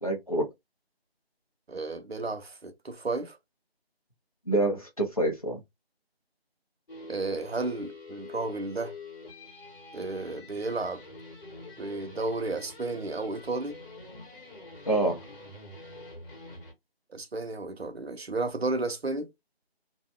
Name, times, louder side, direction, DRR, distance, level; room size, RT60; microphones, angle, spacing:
voice 1, 0.0-0.5 4.5-5.6 14.9-15.2, right 2 dB, 35° left, 0.7 m, -27 dB
voice 2, 1.7-3.4 7.1-8.9 9.9-11.0 11.8-13.8 17.1-19.3, right 3 dB, 75° right, 0.8 m, -33 dB
sound 1, 6.9-16.7, left 2 dB, 55° left, 1.2 m, -46 dB
2.6 x 2.2 x 3.2 m
figure-of-eight pair, 170°, 32 cm